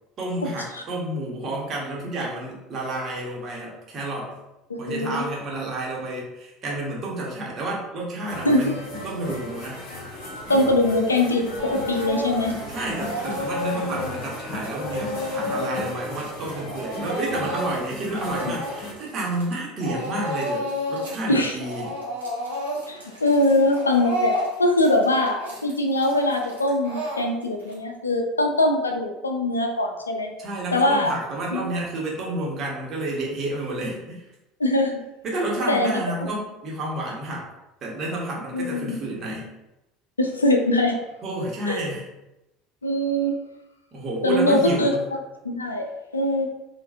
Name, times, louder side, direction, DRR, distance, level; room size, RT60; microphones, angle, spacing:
voice 1, 0.2-4.3 4.8-9.8 12.7-21.9 30.4-34.3 35.2-37.5 37.8-39.5 41.2-42.1 43.9-45.0, right 1 dB, 40° right, -3 dB, 1.2 m, -30 dB
voice 2, 4.7-5.2 8.4-8.8 10.5-12.5 21.3-21.5 22.9-30.3 30.7-31.1 31.5-31.7 34.6-35.0 35.7-35.9 38.5-39.0 40.2-41.0 41.7-41.8 42.8-43.3 44.2-44.9 45.4-45.9 46.1-46.5, left 1 dB, 85° left, 4 dB, 0.4 m, -22 dB
sound 1, 8.2-18.9, left 1 dB, 55° left, 1.2 m, -36 dB
Speech / Crying sobbing, 11.6-12.6 12.9-19.5 19.8-21.2 21.5-27.7, left 1 dB, 85° right, 1.0 m, -31 dB
4.6 x 2.5 x 2.5 m, 0.95 s
figure-of-eight pair, 70°, 0 cm